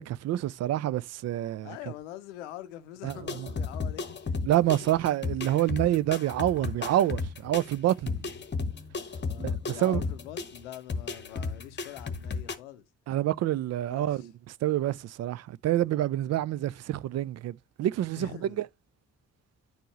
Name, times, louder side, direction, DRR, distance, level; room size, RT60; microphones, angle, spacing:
voice 1, 0.0-1.7 3.0-3.1 4.4-8.1 9.4-9.6 9.8-10.0 13.1-14.3 14.6-18.3 18.6-18.7, right 13 dB, 50° right, 0.4 m, -27 dB
voice 2, 1.6-4.4 4.7-4.8 8.0-8.3 9.2-12.9 13.9-14.3 16.3-16.5 18.2-18.6, left 12 dB, 85° left, 0.6 m, -44 dB
sound 1, 3.1-12.6, left 4 dB, 30° left, 1.0 m, -34 dB
9.3 x 4.5 x 3.0 m
hypercardioid pair, 40°, 35 cm